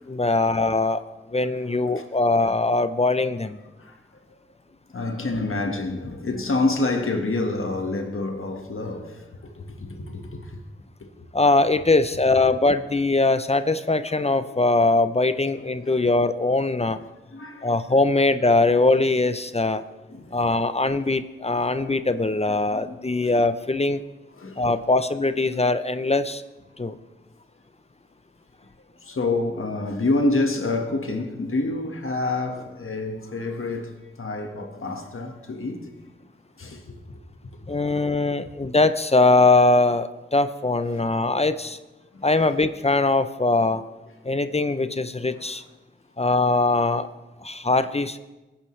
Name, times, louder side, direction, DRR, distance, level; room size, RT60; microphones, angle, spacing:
voice 1, 0.1-1.0 1.3-3.6 11.3-17.0 17.6-19.8 20.3-24.0 24.6-26.4 26.8-27.0 37.7-41.8 42.2-43.8 44.2-45.6 46.2-47.1 47.4-48.2, left 2 dB, 30° left, 0.6 m, -21 dB
voice 2, 3.8-4.4 4.9-10.6 11.0-11.3 14.7-14.8 15.8-16.0 17.3-17.7 20.1-20.4 21.0-21.1 22.5-23.3 24.4-24.7 29.0-35.9 36.6-37.2 37.6-37.8 38.0-38.2 40.9-41.0 42.1-42.6 45.3-45.6, left 2 dB, 85° left, 1.5 m, -28 dB
22.5 x 10.0 x 3.2 m
wide cardioid pair, 60°, 21 cm